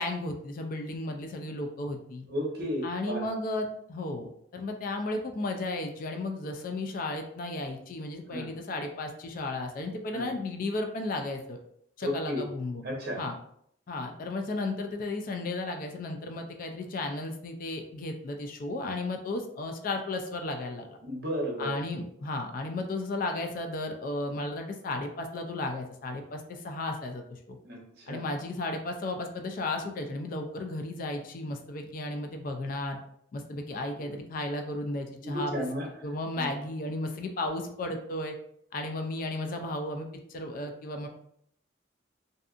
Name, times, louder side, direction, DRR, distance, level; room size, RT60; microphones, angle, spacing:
voice 1, 0.0-2.3 2.8-11.6 12.0-12.8 13.2-13.3 13.9-21.0 21.6-27.6 28.1-33.0 33.3-35.6 36.0-38.3 38.7-41.1, left 2 dB, 45° left, 4 dB, 0.3 m, -34 dB
voice 2, 2.3-3.2 8.3-8.5 10.1-10.3 12.0-12.4 12.8-13.2 21.0-21.7 27.6-28.2 33.9-34.1 35.2-35.9 36.4-36.6, equal, 55° right, -1 dB, 0.8 m, -33 dB
2.6 x 2.4 x 2.4 m, 0.69 s
head